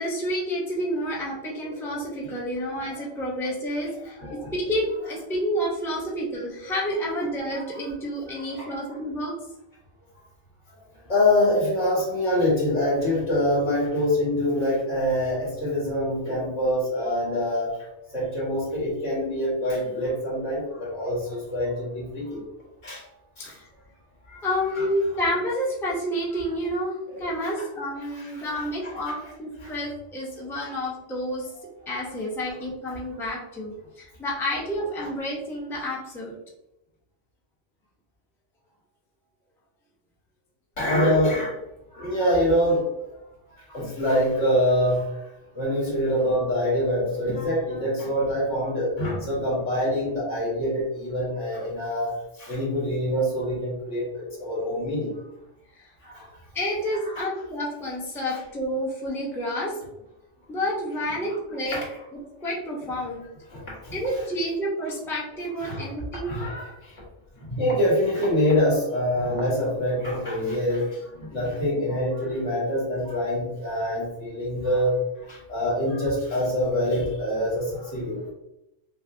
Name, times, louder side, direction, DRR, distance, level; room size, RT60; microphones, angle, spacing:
voice 1, 0.0-4.2 4.5-9.3 23.4-23.7 24.4-31.5 31.9-36.3 55.8-55.9 56.5-59.9 60.5-61.8 62.4-63.2 63.9-66.3, equal, 5° left, -5 dB, 0.6 m, -29 dB
voice 2, 2.6-3.0 4.2-4.5 6.6-6.7 7.5-7.9 8.3-8.7 11.1-17.8 18.1-22.4 22.8-23.0 23.4-23.5 24.3-24.5 24.7-24.9 27.1-27.6 28.2-29.2 29.6-29.8 35.0-35.1 40.8-41.6 41.9-42.9 43.6-45.2 45.5-55.1 56.0-56.3 57.1-57.2 58.3-58.4 61.6-61.8 63.5-64.2 65.6-65.9 66.2-67.0 67.4-74.9 75.2-78.3, left 1 dB, 75° left, -6 dB, 2.0 m, -25 dB
5.6 x 2.0 x 2.6 m, 0.89 s
omnidirectional pair, 1.2 m